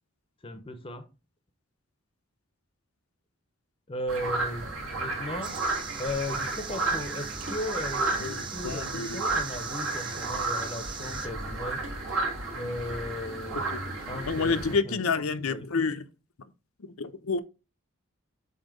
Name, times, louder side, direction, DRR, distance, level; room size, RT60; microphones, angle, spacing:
voice 1, 0.4-1.1 3.9-4.7 5.0-5.6 6.0-11.8 12.5-13.7 14.1-15.7, left 1 dB, 25° left, 0.6 m, -36 dB
sound 1, 4.1-14.7, right 2 dB, 75° right, 2.3 m, -32 dB
sound 2, 5.4-11.3, right 6 dB, 20° right, 0.5 m, -41 dB
voice 2, 8.2-9.2 14.3-16.0 16.8-17.4, left 4 dB, 90° left, 0.7 m, -29 dB
7.5 x 2.8 x 5.1 m
head